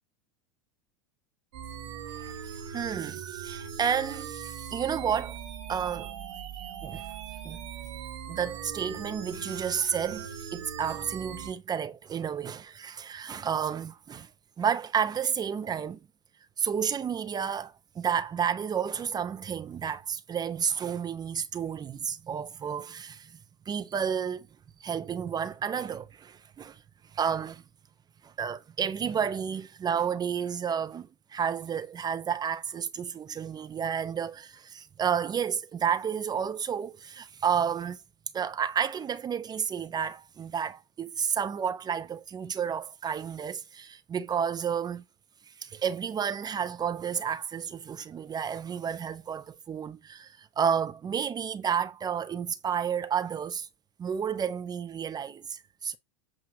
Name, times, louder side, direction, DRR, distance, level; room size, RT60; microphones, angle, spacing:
sound 1, 1.5-11.5, right 8 dB, 65° right, 1.6 m, -40 dB
voice 1, 2.0-5.4 5.7-6.1 6.8-7.1 7.4-7.6 8.3-14.3 14.6-16.0 16.6-23.3 23.7-24.5 24.8-26.8 27.1-27.6 28.2-38.0 38.3-45.0 45.5-53.7 54.0-56.0, right 7 dB, 25° right, 0.7 m, -31 dB
8.4 x 2.9 x 5.9 m
figure-of-eight pair, 80°, 17 cm